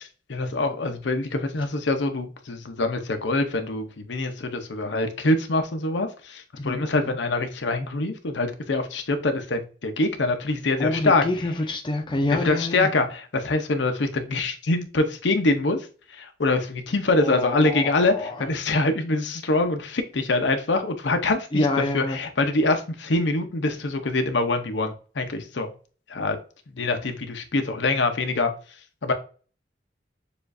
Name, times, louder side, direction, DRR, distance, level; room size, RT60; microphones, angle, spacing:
voice 1, 0.3-11.2 12.3-21.6 21.9-25.7 26.1-26.4 26.7-28.5 29.0-29.1, left 2 dB, 80° left, 0.7 m, -24 dB
voice 2, 6.6-7.2 10.8-12.9 17.2-18.5 21.5-22.2, left 2 dB, 25° left, 0.5 m, -27 dB
6.8 x 2.5 x 2.6 m
head